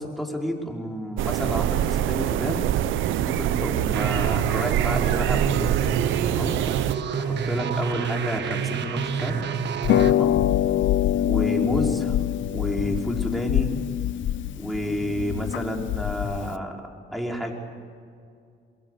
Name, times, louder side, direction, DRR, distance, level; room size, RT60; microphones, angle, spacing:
voice 1, 0.0-2.6 3.1-5.8 6.3-6.6 7.1-9.4 10.1-10.4 11.3-12.2 12.5-13.7 14.6-16.8 17.1-17.5, equal, ahead, -1 dB, 5.4 m, -30 dB
sound 1, 1.2-6.9, right 12 dB, 85° right, 0.8 m, -25 dB
sound 2, 3.9-10.1, right 7 dB, 60° right, 1.6 m, -28 dB
Harp, 9.8-16.6, left 11 dB, 75° left, 0.8 m, -24 dB
28.0 x 23.0 x 6.8 m, 2.3 s
cardioid pair, 90°, 20 cm